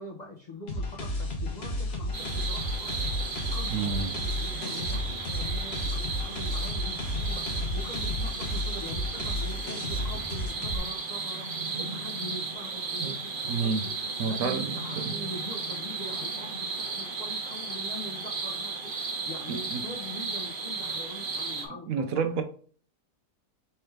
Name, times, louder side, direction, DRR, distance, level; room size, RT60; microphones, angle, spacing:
voice 1, 0.0-22.4, left 2 dB, 60° left, 0.4 m, -43 dB
sound 1, 0.7-10.8, left 1 dB, 45° left, 1.0 m, -33 dB
sound 2, 2.1-21.7, right 4 dB, 40° right, 0.8 m, -34 dB
voice 2, 3.7-4.1 13.0-13.1 13.5-13.8 14.2-15.1 19.5-19.8 21.9-22.4, right 5 dB, 70° right, 0.8 m, -29 dB
3.4 x 3.4 x 4.5 m
omnidirectional pair, 1.8 m